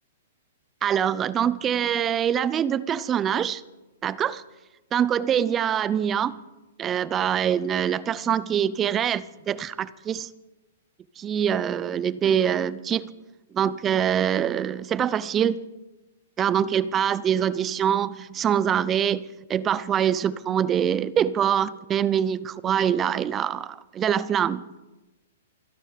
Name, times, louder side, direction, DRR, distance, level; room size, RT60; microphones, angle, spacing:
voice 1, 0.8-3.6 4.0-4.4 4.9-6.4 6.8-10.3 11.2-13.1 13.5-15.6 16.4-19.2 19.5-24.8, right 9 dB, 20° right, 18 dB, 0.6 m, -24 dB
26.5 x 9.9 x 5.1 m, 1.1 s
hypercardioid pair, 140°, 0 cm